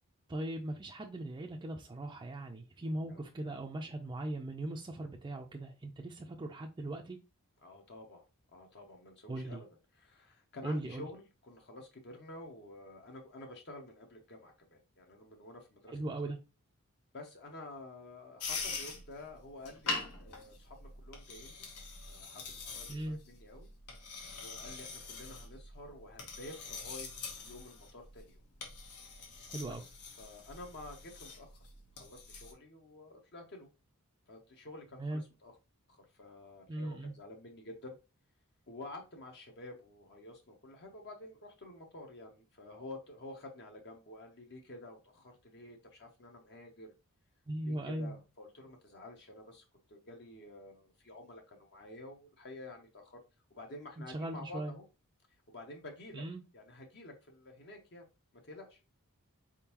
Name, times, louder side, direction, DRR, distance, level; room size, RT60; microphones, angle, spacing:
voice 1, 0.3-7.2 9.3-9.6 10.6-11.0 15.9-16.4 22.9-23.2 29.5-29.8 35.0-35.2 36.7-37.1 47.5-48.2 54.1-54.7 56.1-56.4, right 1 dB, 20° right, 0.4 m, -39 dB
voice 2, 7.6-8.3 8.5-9.7 9.9-16.0 17.1-21.7 22.0-23.7 24.3-27.1 27.4-28.4 29.7-29.9 30.2-31.6 32.0-33.7 34.3-35.5 35.9-38.0 38.7-46.9 47.6-53.2 53.6-54.9 55.5-56.2 56.5-58.1 58.3-58.8, left 2 dB, 50° left, 0.7 m, -50 dB
sound 1, 18.4-32.5, left 4 dB, 90° left, 1.2 m, -44 dB
4.3 x 3.7 x 2.9 m
head